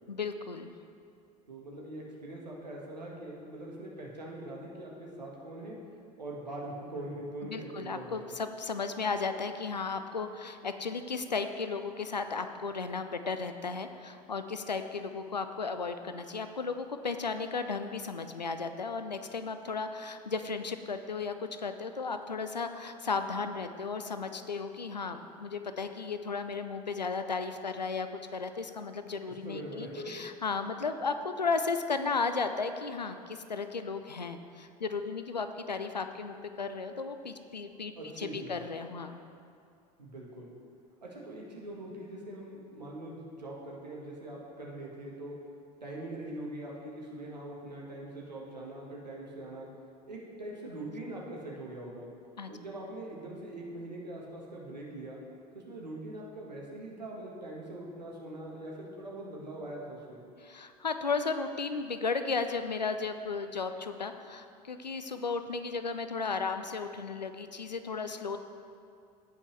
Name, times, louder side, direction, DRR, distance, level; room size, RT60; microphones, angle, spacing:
voice 1, 0.1-0.7 7.4-39.2 52.4-52.5 60.4-68.4, left 4 dB, 90° left, 9 dB, 0.5 m, -35 dB
voice 2, 1.5-5.8 6.2-8.3 29.3-30.1 37.9-38.6 40.0-40.5 41.0-45.4 45.8-49.7 50.1-52.1 52.5-55.2 55.5-60.2, right 1 dB, 85° right, -3 dB, 1.5 m, -42 dB
16.0 x 5.6 x 3.2 m, 2.4 s
figure-of-eight pair, 70°, 21 cm